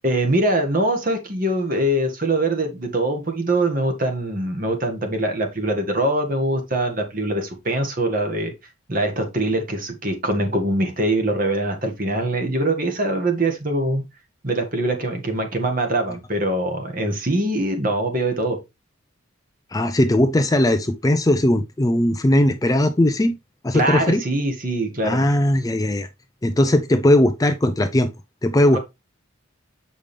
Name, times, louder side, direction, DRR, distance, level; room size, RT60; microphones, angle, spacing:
voice 1, 0.0-8.5 8.9-14.0 14.4-18.6 23.7-25.2 28.7-28.8, right 1 dB, 40° right, 1.6 m, -23 dB
voice 2, 19.7-23.4 23.6-24.2 25.0-26.1 26.4-28.1 28.4-28.8, left 1 dB, 15° left, 0.4 m, -18 dB
7.0 x 5.1 x 3.3 m
head